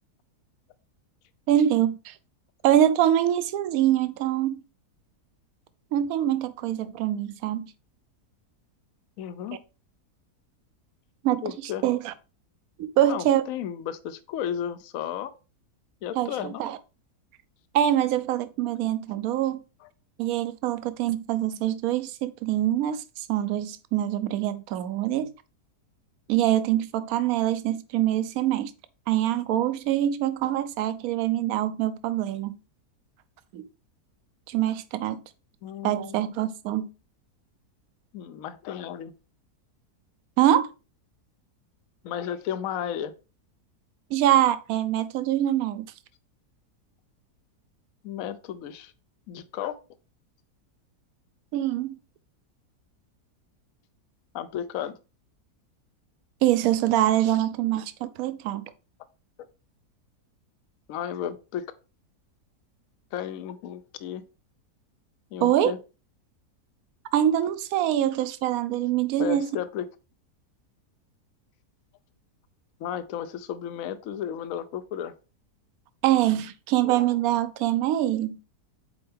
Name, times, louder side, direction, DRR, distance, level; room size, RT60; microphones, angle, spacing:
voice 1, 1.5-2.1 2.6-4.6 5.9-7.7 11.2-11.4 11.8-12.1 12.8-13.4 16.2-16.8 17.7-19.6 20.2-25.3 26.3-28.7 29.1-32.6 33.5-33.6 34.5-35.2 35.8-36.9 40.4-40.7 44.1-45.8 51.5-52.0 56.4-58.7 65.4-65.7 67.1-69.5 76.0-78.4, right 12 dB, 70° right, 1.0 m, -24 dB
voice 2, 9.2-9.6 11.4-11.8 13.0-15.3 16.0-16.6 19.8-19.9 35.6-36.2 38.1-39.1 42.0-43.1 48.0-48.9 49.3-49.7 54.3-54.9 60.9-61.7 63.1-64.2 65.3-65.8 69.2-69.9 72.8-75.1, left 9 dB, 65° left, 1.0 m, -33 dB
7.8 x 4.5 x 3.4 m
omnidirectional pair, 1.7 m